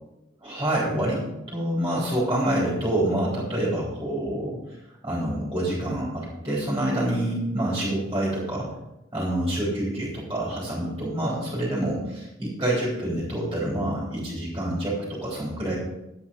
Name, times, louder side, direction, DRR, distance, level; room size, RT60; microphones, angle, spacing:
voice 1, 0.4-4.6 5.0-8.7 9.1-15.8, right 1 dB, 15° right, -6 dB, 3.8 m, -27 dB
12.0 x 8.5 x 5.3 m, 0.90 s
head